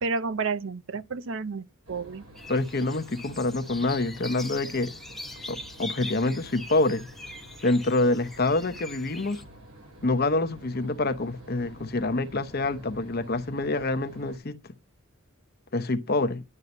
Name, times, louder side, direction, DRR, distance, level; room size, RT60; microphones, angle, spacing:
voice 1, 0.0-2.2, right 4 dB, 60° right, 0.6 m, -31 dB
sound 1, 1.8-14.4, right 1 dB, 80° right, 6.4 m, -49 dB
sound 2, 2.4-9.4, left 2 dB, ahead, 0.8 m, -42 dB
voice 2, 2.5-4.9 5.5-7.1 7.6-9.4 10.0-14.5 15.7-16.4, left 2 dB, 45° left, 0.9 m, -26 dB
11.0 x 5.6 x 5.4 m
head